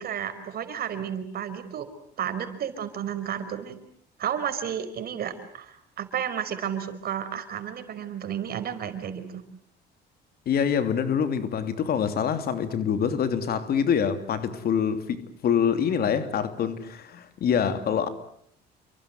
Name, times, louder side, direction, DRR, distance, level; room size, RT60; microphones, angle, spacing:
voice 1, 0.0-1.9 2.2-3.8 4.2-9.4, right 9 dB, 60° right, 4.8 m, -32 dB
voice 2, 10.5-18.1, left 7 dB, 60° left, 3.0 m, -25 dB
29.0 x 24.0 x 7.8 m
cardioid pair, 110°, 18 cm